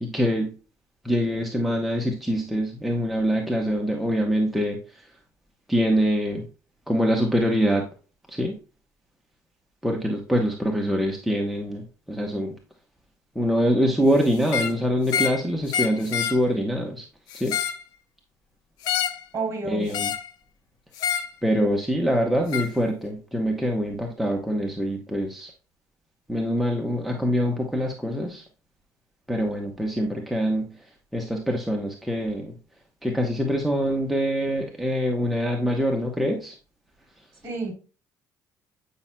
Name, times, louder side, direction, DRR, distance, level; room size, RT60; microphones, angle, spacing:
voice 1, 0.0-0.5 1.0-4.8 5.7-6.4 6.9-7.8 8.4-8.5 9.8-11.8 12.1-12.5 13.4-17.0 17.3-17.5 19.7-20.1 21.4-25.5 26.3-28.4 29.3-30.7 31.1-32.5 33.0-36.5, equal, ahead, 0 dB, 0.9 m, -24 dB
sound 1, 14.4-14.8 15.1-15.4 15.7-16.4 17.3-17.8 18.8-19.2 19.9-20.3 21.0-21.3 22.5-22.7, left 8 dB, 80° left, 0.6 m, -27 dB
voice 2, 19.3-20.0 37.4-37.7, right 3 dB, 40° right, 2 dB, 3.3 m, -30 dB
8.8 x 5.5 x 2.2 m, 0.35 s
cardioid pair, 110°, 7 cm